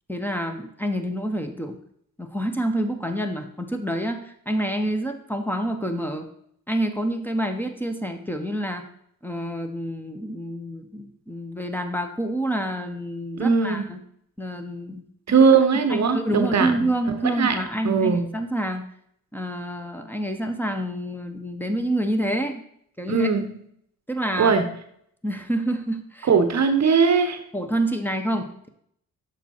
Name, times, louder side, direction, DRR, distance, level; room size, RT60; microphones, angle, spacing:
voice 1, 0.1-1.8 2.2-6.3 6.7-8.8 9.2-14.0 14.4-15.0 15.9-18.8 19.3-22.6 23.0-23.3 24.1-24.5 25.2-26.3 27.5-28.7, right 1 dB, 5° left, 5 dB, 1.1 m, -27 dB
voice 2, 13.4-13.9 15.3-16.9 17.4-17.5 17.8-18.3 23.1-23.5 24.4-24.6 26.2-27.4, right 5 dB, 50° right, 8 dB, 0.9 m, -19 dB
6.7 x 4.9 x 4.4 m, 0.69 s
supercardioid pair, 45°, 36 cm